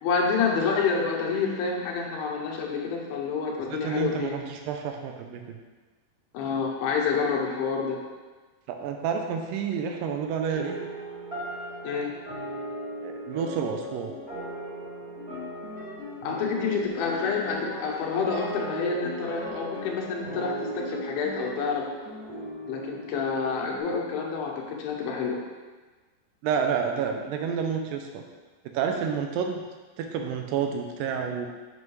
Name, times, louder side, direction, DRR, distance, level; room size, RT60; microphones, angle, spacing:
voice 1, 0.0-4.4 6.3-8.0 11.8-12.1 16.2-21.9 22.7-25.4, left 5 dB, 85° left, 0 dB, 2.7 m, -28 dB
voice 2, 3.7-5.6 8.7-10.8 13.0-14.1 26.4-28.2 28.7-29.6 30.0-31.5, right 7 dB, 80° right, 4 dB, 2.1 m, -29 dB
sound 1, 10.5-23.8, right 1 dB, 15° right, 1.1 m, -38 dB
sound 2, 15.0-22.5, left 2 dB, 45° right, 1.1 m, -43 dB
7.9 x 5.4 x 3.1 m, 1.3 s
omnidirectional pair, 4.2 m